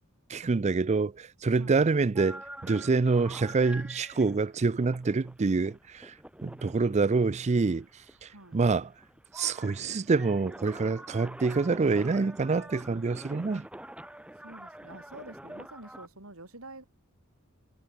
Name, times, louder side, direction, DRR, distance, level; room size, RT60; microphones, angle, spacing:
voice 1, 0.3-6.1 6.4-7.9 8.2-8.9 9.3-13.7, right 4 dB, 30° right, 0.4 m, -26 dB
sound 1, 2.2-16.1, right 1 dB, 5° right, 1.2 m, -47 dB
voice 2, 8.3-8.6 14.3-16.8, right 2 dB, 75° right, 4.8 m, -47 dB
head